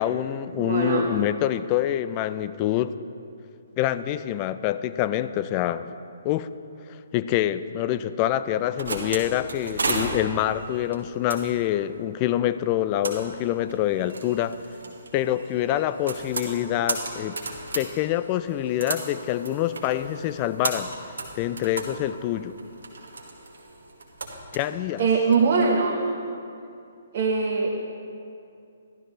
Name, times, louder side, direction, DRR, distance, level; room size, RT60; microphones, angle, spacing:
voice 1, 0.0-2.9 3.8-5.9 6.2-6.5 6.9-14.6 15.1-17.4 17.7-20.9 21.4-22.6 24.5-25.1, left 12 dB, 30° left, 13 dB, 0.4 m, -26 dB
voice 2, 0.6-1.1 25.0-26.0 27.1-27.8, right 4 dB, 45° right, -2 dB, 1.2 m, -22 dB
sound 1, 8.5-25.7, right 3 dB, 70° right, 1.6 m, -35 dB
13.5 x 12.0 x 3.2 m, 2.6 s
figure-of-eight pair, 130°, 0 cm